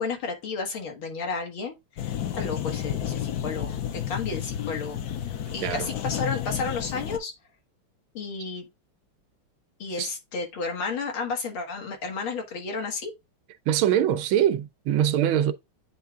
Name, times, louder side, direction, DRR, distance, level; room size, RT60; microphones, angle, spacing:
voice 1, 0.0-5.0 5.5-7.3 8.1-8.7 9.8-13.1, left 4 dB, 90° left, 2.5 m, -32 dB
sound 1, 2.0-7.2, left 10 dB, 65° left, 1.0 m, -31 dB
voice 2, 13.7-15.5, right 10 dB, 90° right, 1.6 m, -23 dB
8.9 x 3.3 x 3.5 m
omnidirectional pair, 2.2 m